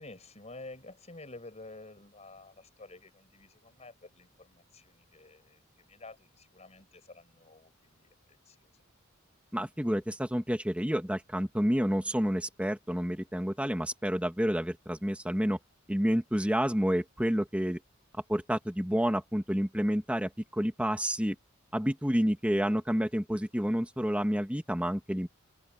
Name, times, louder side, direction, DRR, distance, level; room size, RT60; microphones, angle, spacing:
voice 1, 0.0-8.1 8.5-8.7, left 2 dB, 35° left, 5.7 m, -50 dB
voice 2, 9.5-15.6 15.9-17.8 18.3-21.4 21.7-25.3, equal, 5° right, 2.1 m, -29 dB
open air
head